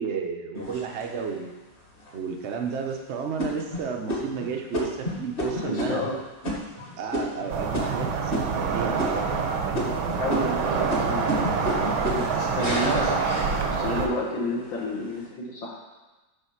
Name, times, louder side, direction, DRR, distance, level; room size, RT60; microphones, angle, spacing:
voice 1, 0.0-1.5 2.1-6.0 7.0-9.0 9.6-10.0, right 6 dB, 70° right, 3 dB, 0.6 m, -32 dB
sound 1, 0.5-1.4 2.0-2.1 2.6-2.9 3.4-8.7 9.0-9.5 9.7-14.1 14.5-15.1, equal, 30° left, 1.4 m, -32 dB
voice 2, 5.5-6.2 10.2-11.4 12.1-15.8, left 2 dB, 70° left, -4 dB, 2.2 m, -30 dB
sound 2, 7.5-14.1, right 5 dB, 85° right, 1.6 m, -26 dB
8.6 x 3.6 x 5.7 m, 1.1 s
omnidirectional pair, 2.2 m